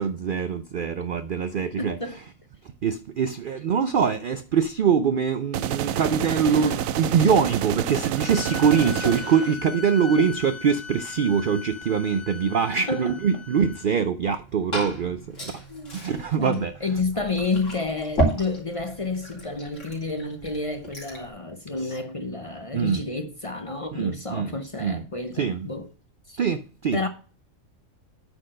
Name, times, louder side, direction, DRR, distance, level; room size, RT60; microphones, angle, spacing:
voice 1, 0.0-2.2 2.6-15.6 15.9-16.8 21.8-22.0 22.7-23.0 23.9-25.0 25.3-25.7 26.4-27.0, right 6 dB, 60° right, 0.5 m, -24 dB
voice 2, 1.8-2.2 6.5-6.8 7.2-7.3 8.7-9.3 10.2-10.3 12.9-13.1 15.7-15.9 16.4-25.9 26.3-26.4 26.9-27.1, left 3 dB, 30° left, 0.8 m, -30 dB
sound 1, 5.5-9.5, right 10 dB, 80° right, 1.0 m, -28 dB
sound 2, 8.2-13.9, left 5 dB, 80° left, 1.8 m, -38 dB
Liquid, 14.2-21.3, right 1 dB, 60° left, 3.5 m, -33 dB
9.4 x 4.5 x 6.3 m
omnidirectional pair, 1.4 m